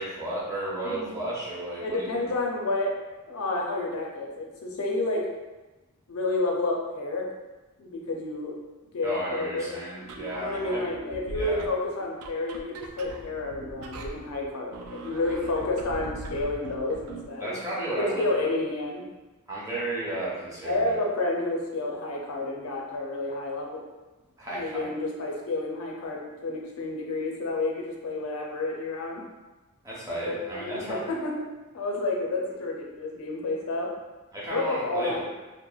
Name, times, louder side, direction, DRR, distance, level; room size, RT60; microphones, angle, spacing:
voice 1, 0.0-2.1 9.0-10.8 11.3-11.7 17.4-18.5 19.5-21.0 24.4-24.8 29.8-31.0 34.3-35.2, right 1 dB, 15° right, -7 dB, 0.6 m, -33 dB
voice 2, 1.8-3.0 3.3-5.3 6.1-7.3 7.8-8.6 8.9-9.7 10.4-17.5 18.0-19.0 20.6-23.8 24.5-29.2 30.1-31.4 31.7-33.9 34.5-35.2, left 2 dB, 75° left, -1 dB, 0.4 m, -30 dB
sound 1, 10.0-17.3, right 2 dB, 80° right, 0.3 m, -41 dB
2.9 x 2.1 x 2.3 m, 1.1 s
head